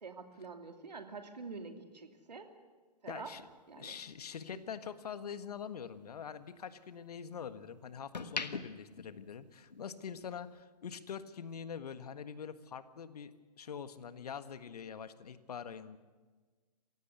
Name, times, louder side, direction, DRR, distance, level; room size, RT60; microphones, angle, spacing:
voice 1, 0.0-2.5 3.0-3.3 3.7-4.0 4.5-4.6, right 4 dB, 80° right, 6 dB, 2.7 m, -46 dB
voice 2, 3.1-3.4 3.8-13.3 13.6-16.0, left 7 dB, 65° left, 12 dB, 1.5 m, -44 dB
sound 1, 3.3-5.6 6.0-7.5 7.9-10.0 10.3-10.6, left 4 dB, 80° left, 1.5 m, -44 dB
26.5 x 16.5 x 8.2 m, 1.4 s
figure-of-eight pair, 120°, 21 cm